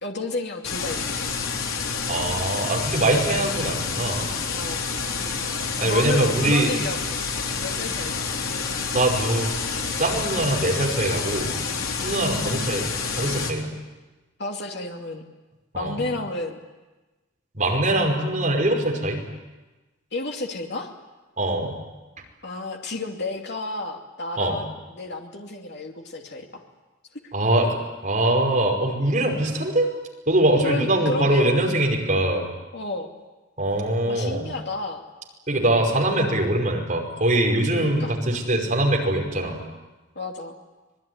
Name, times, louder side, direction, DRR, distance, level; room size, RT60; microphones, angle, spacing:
voice 1, 0.0-1.3 4.5-4.8 5.8-7.0 7.6-8.3 12.2-12.7 14.4-15.2 15.7-16.6 20.1-20.9 22.4-26.6 30.6-31.5 32.7-33.1 34.0-35.0 37.7-38.1 40.1-40.5, left 2 dB, 55° left, 2 dB, 2.7 m, -31 dB
sound 1, 0.6-13.5, left 5 dB, 85° left, 4.0 m, -28 dB
voice 2, 2.1-4.3 5.8-6.7 8.9-9.5 9.8-11.5 12.0-12.9 13.2-13.7 15.7-16.0 17.5-19.2 21.4-21.7 24.4-24.6 27.3-27.8 28.0-29.9 30.3-32.4 33.6-34.5 35.5-39.6, right 1 dB, 40° right, 1 dB, 5.4 m, -22 dB
26.0 x 21.0 x 9.7 m, 1.2 s
head